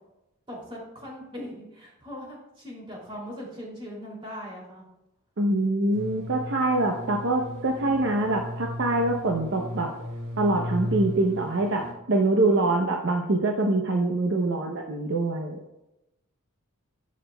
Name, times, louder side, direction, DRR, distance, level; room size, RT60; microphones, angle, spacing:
voice 1, 0.5-4.8 12.4-12.8, equal, 25° right, -3 dB, 2.7 m, -40 dB
voice 2, 5.4-9.9 10.4-15.6, right 2 dB, 60° right, 2 dB, 0.7 m, -24 dB
sound 1, 5.9-11.9, equal, 75° right, 3.1 m, -35 dB
11.0 x 7.4 x 2.3 m, 0.92 s
head